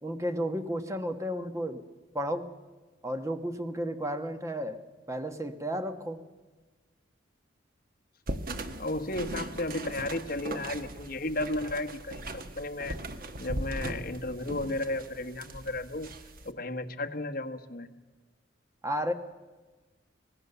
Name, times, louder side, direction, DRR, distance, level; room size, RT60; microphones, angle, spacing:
voice 1, 0.0-1.8 2.1-2.5 3.0-4.8 5.1-6.2 18.8-19.1, equal, 15° right, 7 dB, 1.2 m, -32 dB
sound 1, 8.3-16.5, right 1 dB, 50° right, 1.3 m, -39 dB
voice 2, 8.8-13.0 13.4-16.1 16.4-17.9, left 2 dB, 50° left, 5 dB, 1.3 m, -34 dB
25.5 x 18.5 x 6.9 m, 1.3 s
head